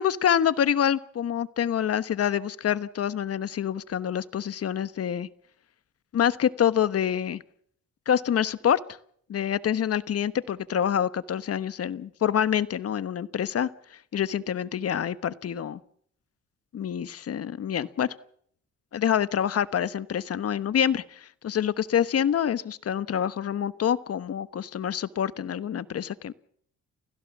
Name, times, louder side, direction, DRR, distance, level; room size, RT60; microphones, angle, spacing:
voice 1, 0.0-5.3 6.1-7.4 8.1-8.8 9.3-13.7 14.1-15.8 16.7-18.1 18.9-26.3, left 9 dB, 55° left, 14 dB, 1.2 m, -26 dB
29.5 x 16.0 x 7.3 m, 0.65 s
cardioid pair, 90°, 30 cm